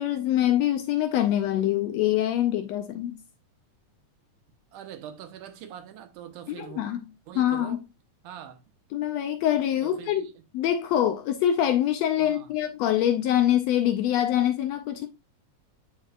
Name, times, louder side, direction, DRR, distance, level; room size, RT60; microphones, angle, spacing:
voice 1, 0.0-3.2 6.5-7.0 7.4-7.8 8.9-10.3 10.5-15.1, left 11 dB, 75° left, 1.6 m, -24 dB
voice 2, 4.7-6.8 7.3-7.8 8.2-8.6 9.8-10.4 12.2-12.5, right 9 dB, 85° right, 2.5 m, -43 dB
8.6 x 5.2 x 2.5 m
omnidirectional pair, 3.5 m